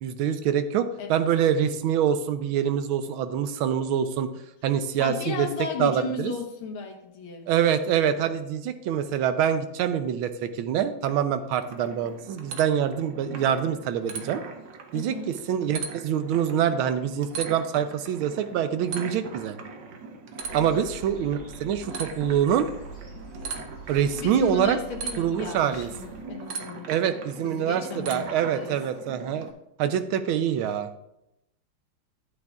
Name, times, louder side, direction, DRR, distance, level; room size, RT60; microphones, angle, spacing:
voice 1, 0.0-4.3 4.6-5.5 5.8-6.3 7.5-14.4 14.9-19.6 20.5-22.7 23.9-24.8 25.2-25.9 26.9-29.5 29.8-30.9, right 9 dB, 85° right, 10 dB, 1.5 m, -25 dB
voice 2, 5.0-7.5 14.9-15.3 20.6-21.0 24.1-26.9 27.4-28.8, left 5 dB, 80° left, 3 dB, 2.1 m, -35 dB
sound 1, 11.1-29.5, right 5 dB, 65° right, 1.6 m, -40 dB
sound 2, 20.4-26.2, right 2 dB, 30° right, 2.7 m, -44 dB
11.0 x 9.4 x 2.4 m, 0.86 s
omnidirectional pair, 2.3 m